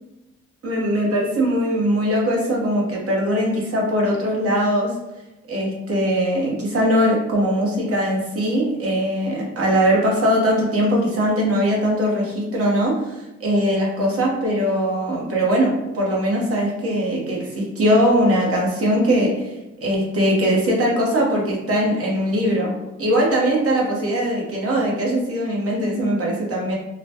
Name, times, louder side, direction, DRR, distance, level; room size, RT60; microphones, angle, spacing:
voice 1, 0.6-4.9 5.5-19.5 19.8-22.7 23.0-26.8, equal, 50° right, -3 dB, 1.1 m, -21 dB
3.0 x 2.1 x 2.8 m, 1.0 s
cardioid pair, 90°, 30 cm